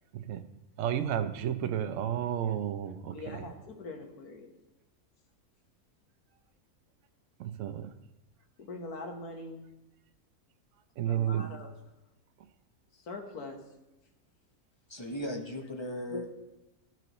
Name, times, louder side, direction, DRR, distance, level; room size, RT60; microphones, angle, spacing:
voice 1, 0.8-3.1 7.4-7.9 11.0-11.4, right 10 dB, 65° right, 9 dB, 0.9 m, -31 dB
voice 2, 3.1-4.5 8.6-9.6 11.1-11.7 12.9-13.6 16.1-16.2, left 2 dB, 80° left, 2 dB, 1.8 m, -42 dB
voice 3, 14.9-16.3, left 1 dB, 25° left, 2 dB, 0.6 m, -37 dB
13.0 x 6.0 x 3.0 m, 0.98 s
omnidirectional pair, 1.6 m